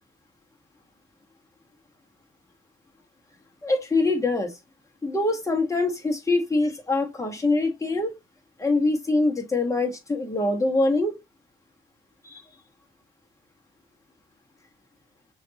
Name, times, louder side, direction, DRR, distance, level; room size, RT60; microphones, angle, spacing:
voice 1, 3.6-4.5 5.0-8.2 8.6-11.2 12.2-12.4, left 2 dB, 15° left, 1.5 m, -24 dB
6.3 x 2.8 x 2.9 m
cardioid pair, 90°, 20 cm